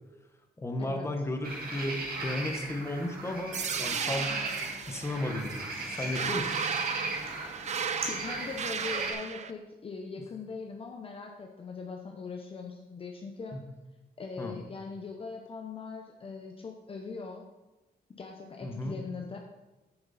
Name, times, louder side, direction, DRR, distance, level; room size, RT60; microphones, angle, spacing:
voice 1, 0.6-4.3 4.9-5.7 6.0-6.6 13.5-13.6 14.4-14.5 18.6-19.0, left 1 dB, 15° left, 4 dB, 1.1 m, -34 dB
sound 1, 1.4-9.1, right 2 dB, 60° right, 2.3 m, -37 dB
sound 2, 3.5-9.5, right 6 dB, 45° right, 0.6 m, -35 dB
voice 2, 7.7-13.6 14.2-17.5 18.1-19.4, left 4 dB, 35° left, 2 dB, 0.8 m, -41 dB
10.0 x 8.8 x 4.1 m, 1.1 s
wide cardioid pair, 170°, 17 cm